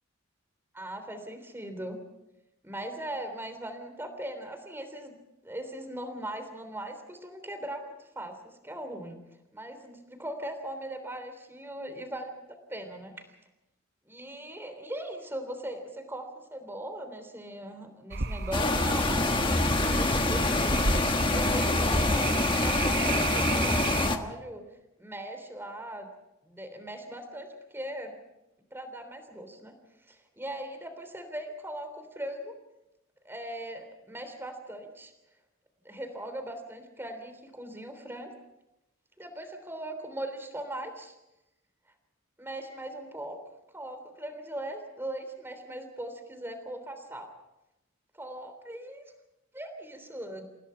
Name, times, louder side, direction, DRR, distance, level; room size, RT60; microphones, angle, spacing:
voice 1, 0.7-2.0 2.6-5.2 5.4-9.2 9.5-13.1 14.0-20.9 21.3-24.6 25.0-26.1 26.4-28.2 28.7-29.7 30.1-32.5 33.2-35.1 35.8-38.3 39.2-41.1 42.4-43.4 43.7-47.3 48.1-49.0 49.5-50.5, right 1 dB, 10° right, 7 dB, 3.3 m, -39 dB
sound 1, 18.1-24.1, right 4 dB, 50° right, 0.9 m, -33 dB
sound 2, 18.5-24.2, left 2 dB, 25° left, 1.4 m, -26 dB
29.5 x 16.5 x 5.7 m, 0.92 s
head